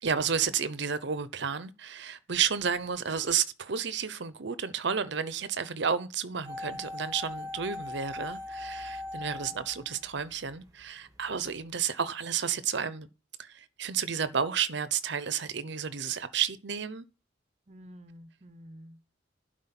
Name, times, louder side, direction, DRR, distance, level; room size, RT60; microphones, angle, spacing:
voice 1, 0.0-13.1 13.4-17.0, right 7 dB, 65° right, 0.8 m, -31 dB
sound 1, 6.4-10.6 10.8-10.9, left 2 dB, 20° right, 1.2 m, -40 dB
voice 2, 17.7-19.1, equal, 35° right, 0.9 m, -50 dB
11.5 x 5.1 x 5.8 m
head